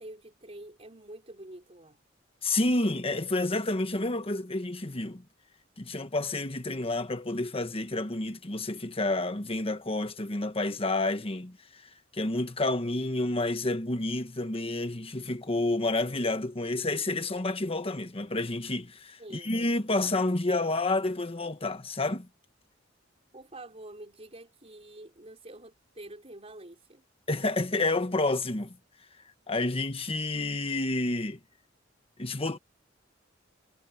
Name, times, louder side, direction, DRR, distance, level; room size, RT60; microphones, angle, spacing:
voice 1, 0.0-2.0 19.2-19.5 23.3-27.0, right 1 dB, 35° right, 4.7 m, -47 dB
voice 2, 2.4-5.2 5.8-11.8 12.1-22.3 27.3-28.8 29.5-31.4 32.2-32.6, left 2 dB, 30° left, 1.3 m, -29 dB
head